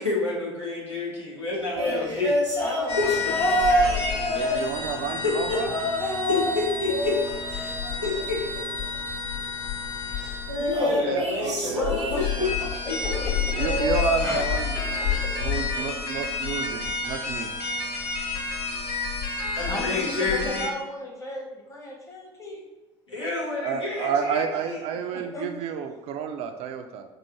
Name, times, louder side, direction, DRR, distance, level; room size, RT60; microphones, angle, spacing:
voice 1, 0.0-2.3 3.0-3.3 4.1-4.6 5.2-7.1 7.5-8.6 9.2-9.3 10.1-12.5 12.9-13.3 15.5-15.8 19.5-20.7 23.1-24.8, left 3 dB, 85° left, -7 dB, 1.3 m, -29 dB
sound 1, 1.7-5.1 5.6-6.6 6.9-8.4 10.5-12.7 13.5-15.0 15.4-15.7 16.9-17.0, equal, 90° right, 0.7 m, -28 dB
voice 2, 1.8-2.1 2.6-4.1 12.8-13.1 13.5-13.6 14.2-14.4 15.0-15.3 17.0-17.8 19.7-22.6 25.1-25.5, left 1 dB, 20° left, -1 dB, 1.0 m, -36 dB
sound 2, 2.9-10.9 11.8-20.7, left 5 dB, 65° left, 0.8 m, -30 dB
voice 3, 4.3-5.7 10.7-11.8 12.1-12.5 13.6-14.8 15.4-17.5 23.2-23.3 23.6-27.1, right 7 dB, 45° right, 6 dB, 0.4 m, -30 dB
5.3 x 2.4 x 3.0 m, 1.1 s
figure-of-eight pair, 65°, 15 cm